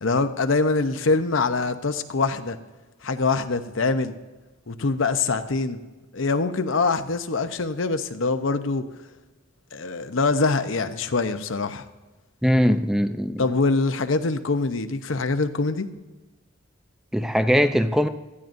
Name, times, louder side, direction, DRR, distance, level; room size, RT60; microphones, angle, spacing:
voice 1, 0.0-2.6 3.0-4.1 4.7-5.8 6.1-8.8 9.7-11.8 13.4-15.9, left 3 dB, 80° left, 9 dB, 0.8 m, -24 dB
voice 2, 12.4-13.4 17.1-18.1, equal, 5° right, 8 dB, 0.4 m, -21 dB
18.0 x 13.5 x 2.6 m, 1.2 s
head